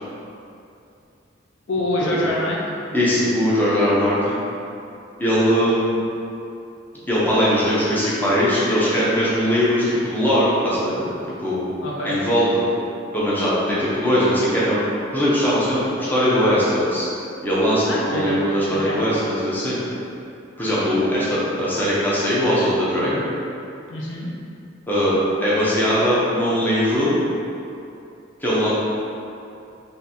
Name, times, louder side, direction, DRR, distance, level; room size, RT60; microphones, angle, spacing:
voice 1, 1.7-2.8 11.8-12.2 17.9-18.3 18.7-19.0 23.9-24.3, left 1 dB, 65° left, -4 dB, 0.5 m, -25 dB
voice 2, 2.9-4.4 5.2-6.0 7.1-11.0 11.4-11.7 12.0-12.6 13.1-14.8 15.1-17.1 17.4-19.8 20.6-23.2 24.9-27.1 28.4-28.7, equal, 10° left, -9 dB, 0.6 m, -20 dB
3.7 x 2.6 x 2.7 m, 2.6 s
head